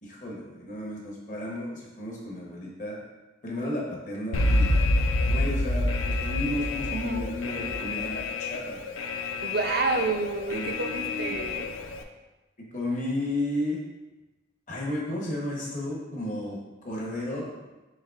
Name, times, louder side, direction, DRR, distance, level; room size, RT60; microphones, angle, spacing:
voice 1, 0.0-3.0 3.4-4.9 5.2-9.0 10.5-11.4 12.7-13.8 14.7-17.7, left 1 dB, 40° left, -3 dB, 0.9 m, -33 dB
Alarm, 4.3-12.0, left 2 dB, 85° left, 0.4 m, -28 dB
voice 2, 6.9-7.3 9.4-11.7, right 3 dB, 50° right, 5 dB, 0.4 m, -29 dB
6.4 x 3.1 x 2.4 m, 1.1 s
head